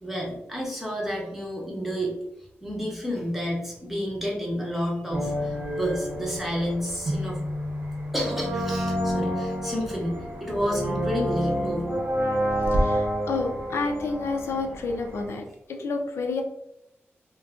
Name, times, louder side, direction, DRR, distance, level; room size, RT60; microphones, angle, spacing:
voice 1, 0.0-2.2 2.6-7.4 8.1-11.9, equal, 5° right, -3 dB, 0.8 m, -30 dB
sound 1, 5.1-15.3, equal, 55° right, 0.8 m, -29 dB
voice 2, 12.7-16.4, left 3 dB, 75° left, 3 dB, 0.5 m, -30 dB
2.6 x 2.3 x 3.5 m, 0.80 s
wide cardioid pair, 180°, 4 cm